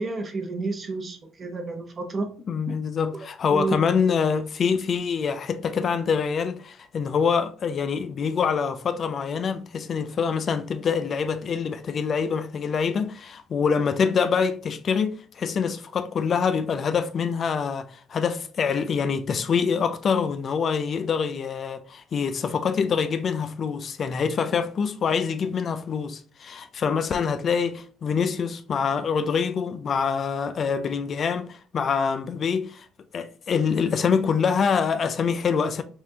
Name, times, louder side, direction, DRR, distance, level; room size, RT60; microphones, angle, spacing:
voice 1, 0.0-2.3 3.5-3.8, right 3 dB, 30° right, 0.8 m, -30 dB
voice 2, 2.5-32.9 33.1-35.8, left 6 dB, 45° left, 0.4 m, -25 dB
5.4 x 2.4 x 2.8 m
cardioid pair, 110°, 0 cm